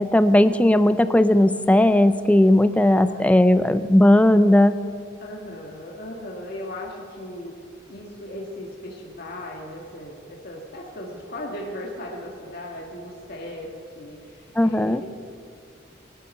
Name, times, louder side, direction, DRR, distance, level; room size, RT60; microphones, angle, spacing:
voice 1, 0.0-4.7 14.6-15.0, left 1 dB, 5° left, 12 dB, 0.4 m, -17 dB
voice 2, 2.7-4.3 5.2-7.5 7.9-15.1, left 1 dB, 50° left, -2 dB, 1.7 m, -37 dB
17.5 x 11.5 x 5.4 m, 2.3 s
head